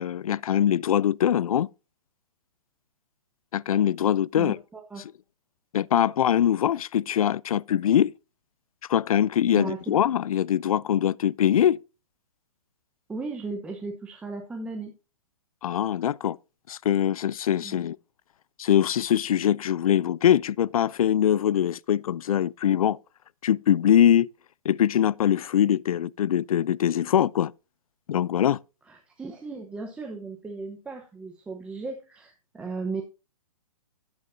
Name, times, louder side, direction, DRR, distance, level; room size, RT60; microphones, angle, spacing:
voice 1, 0.0-1.7 3.5-4.6 5.7-8.1 8.9-11.8 15.6-16.4 16.7-18.0 18.6-23.0 23.4-24.3 24.7-27.5 28.1-28.6, left 10 dB, 85° left, 0.4 m, -22 dB
voice 2, 4.3-5.0 9.5-10.0 13.1-14.9 17.6-17.8 28.9-33.0, right 4 dB, 5° right, 0.9 m, -36 dB
13.0 x 9.6 x 2.6 m
hypercardioid pair, 155°, 18 cm